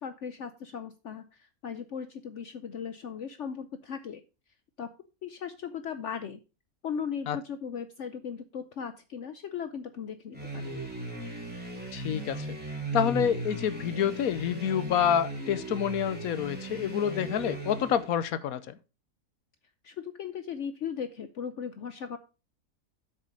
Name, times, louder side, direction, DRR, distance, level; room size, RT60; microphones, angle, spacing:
voice 1, 0.0-4.2 4.8-4.9 5.2-6.4 6.8-10.8 19.8-22.2, left 7 dB, 60° left, 0.9 m, -37 dB
sound 1, 10.3-18.2, right 2 dB, 5° right, 3.2 m, -37 dB
voice 2, 11.9-12.6 12.9-18.7, left 9 dB, 75° left, 1.2 m, -28 dB
8.2 x 6.6 x 4.9 m
omnidirectional pair, 1.5 m